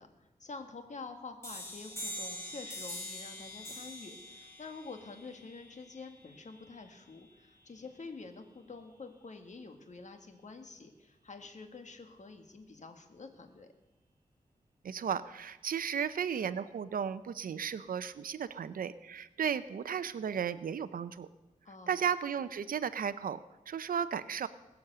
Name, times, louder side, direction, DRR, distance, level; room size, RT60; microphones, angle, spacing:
voice 1, 0.0-13.7 21.6-22.0, left 4 dB, 55° left, 6 dB, 1.7 m, -48 dB
sound 1, 1.4-6.8, left 1 dB, 15° left, 6.6 m, -44 dB
voice 2, 14.8-21.3 21.9-23.4 23.7-24.5, right 8 dB, 85° right, 14 dB, 0.5 m, -34 dB
21.0 x 7.1 x 6.7 m, 1.1 s
wide cardioid pair, 75°, 14 cm